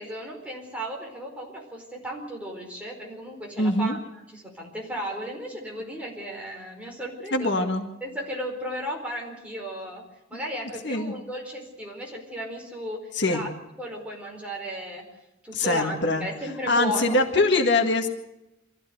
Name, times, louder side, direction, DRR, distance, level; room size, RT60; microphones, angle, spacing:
voice 1, 0.0-4.0 4.3-7.6 8.0-10.0 10.3-13.5 13.8-15.1 15.4-17.7, equal, 5° right, -1 dB, 4.6 m, -35 dB
voice 2, 3.6-4.0 7.3-7.9 10.8-11.1 13.1-13.5 15.5-16.3 16.7-18.1, left 2 dB, 60° left, 4 dB, 1.9 m, -23 dB
24.0 x 14.5 x 7.9 m, 0.90 s
head